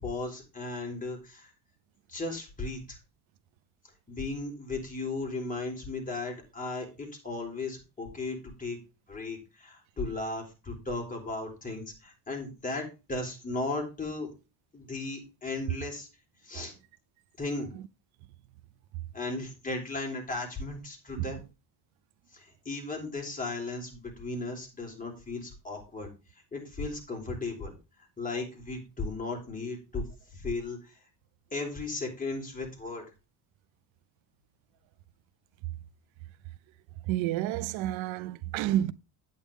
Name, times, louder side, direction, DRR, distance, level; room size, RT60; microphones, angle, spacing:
voice 1, 0.0-1.5 2.1-3.0 4.1-8.8 9.1-14.3 14.7-16.1 16.4-16.7 17.4-17.7 19.1-21.4 22.3-26.1 26.5-27.8 28.2-30.0 30.3-30.9 31.5-33.1, left 3 dB, 20° left, 3.8 m, -36 dB
voice 2, 37.1-38.9, right 13 dB, 85° right, 0.7 m, -29 dB
9.0 x 8.7 x 3.5 m
cardioid pair, 115°, 45 cm